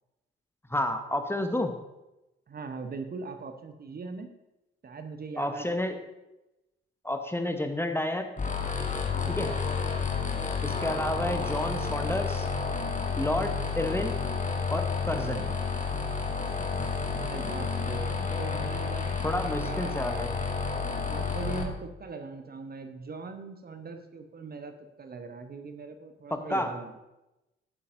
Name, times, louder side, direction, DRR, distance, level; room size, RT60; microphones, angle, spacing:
voice 1, 0.7-1.7 5.4-6.0 7.0-8.3 9.4-9.5 10.6-12.5 13.1-14.1 14.7-15.4 19.2-20.4 26.3-26.7, left 1 dB, 10° left, 6 dB, 1.0 m, -30 dB
voice 2, 2.5-4.3 4.8-5.8 9.1-9.4 13.8-14.1 15.2-15.4 17.1-20.0 21.0-24.7 25.0-26.9, right 4 dB, 30° right, 7 dB, 0.9 m, -41 dB
sound 1, 8.4-21.6, left 5 dB, 25° left, 1.4 m, -31 dB
14.5 x 8.3 x 2.7 m, 0.96 s
figure-of-eight pair, 45°, 30 cm